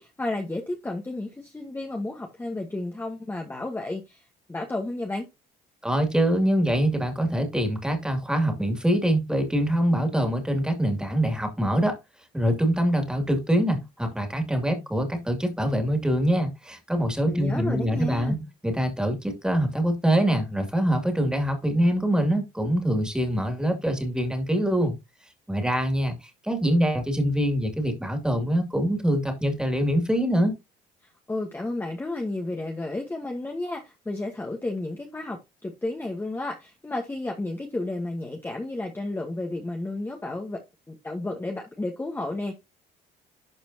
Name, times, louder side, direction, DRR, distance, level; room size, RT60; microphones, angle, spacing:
voice 1, 0.0-4.2 4.5-5.3 17.2-18.4 31.0-40.6 40.9-42.6, left 2 dB, 10° left, 1.2 m, -32 dB
voice 2, 5.8-12.0 12.3-24.9 25.5-30.6, equal, 5° right, 2.4 m, -24 dB
12.0 x 4.2 x 2.8 m
cardioid pair, 110°, 17 cm